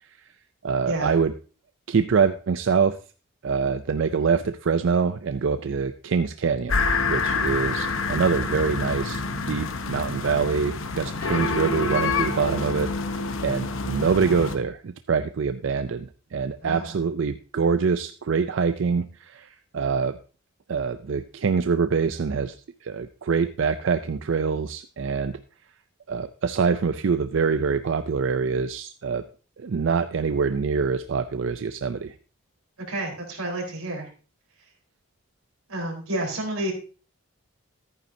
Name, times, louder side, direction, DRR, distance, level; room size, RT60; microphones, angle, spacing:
voice 1, 0.6-1.3 1.9-3.0 3.4-6.8 7.1-12.9 13.4-20.2 20.7-25.4 26.1-29.2 29.6-32.1, right 5 dB, 60° right, 11 dB, 0.4 m, -25 dB
sound 1, 6.7-14.5, left 3 dB, 70° left, 0.9 m, -27 dB
voice 2, 16.6-16.9 32.9-34.1 35.7-36.7, right 1 dB, 90° right, 0 dB, 4.0 m, -30 dB
13.5 x 9.3 x 2.7 m, 0.36 s
head